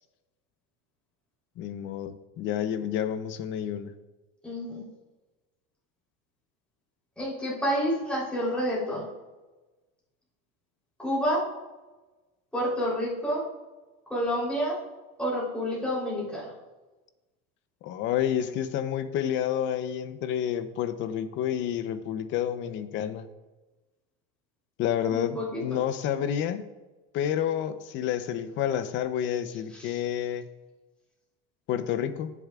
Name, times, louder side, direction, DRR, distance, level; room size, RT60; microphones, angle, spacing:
voice 1, 1.6-3.9 17.8-23.3 24.8-26.7 27.1-30.5 31.7-32.3, left 10 dB, 40° left, 12 dB, 0.7 m, -29 dB
voice 2, 4.4-4.8 7.2-9.1 11.0-11.4 12.5-13.4 14.1-14.8 15.2-16.5 25.1-25.6 29.7-30.0, equal, 5° left, -7 dB, 3.5 m, -29 dB
16.5 x 7.1 x 2.4 m, 1.2 s
supercardioid pair, 145°, 29 cm